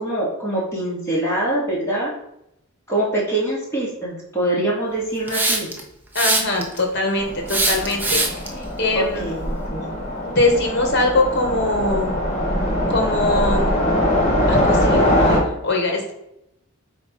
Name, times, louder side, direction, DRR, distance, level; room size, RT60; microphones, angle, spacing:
voice 1, 0.0-2.1 2.9-5.7 8.9-9.9, right 1 dB, 10° left, -6 dB, 2.5 m, -24 dB
Hiss, 5.3-5.8 6.1-6.8 7.5-8.5, right 2 dB, 10° right, 0.9 m, -21 dB
voice 2, 6.1-9.3 10.2-12.2 12.9-13.7 14.5-16.1, left 2 dB, 50° left, 2 dB, 1.6 m, -22 dB
Train, 7.2-15.4, left 1 dB, 30° left, 2.2 m, -22 dB
8.2 x 3.0 x 5.3 m, 0.81 s
head